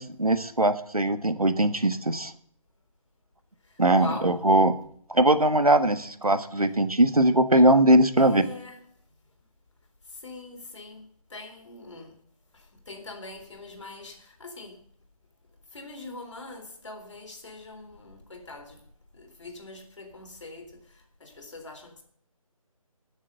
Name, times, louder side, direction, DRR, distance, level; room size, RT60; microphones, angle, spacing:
voice 1, 0.0-2.3 3.8-4.7 5.1-8.4, right 1 dB, 90° right, 1.6 m, -21 dB
voice 2, 3.9-4.4 6.6-6.7 8.2-8.8 10.2-12.1 12.5-14.8 15.7-18.8 19.1-20.8 21.2-22.0, left 3 dB, 55° left, 3.8 m, -42 dB
15.0 x 7.4 x 6.7 m
figure-of-eight pair, 155°, 19 cm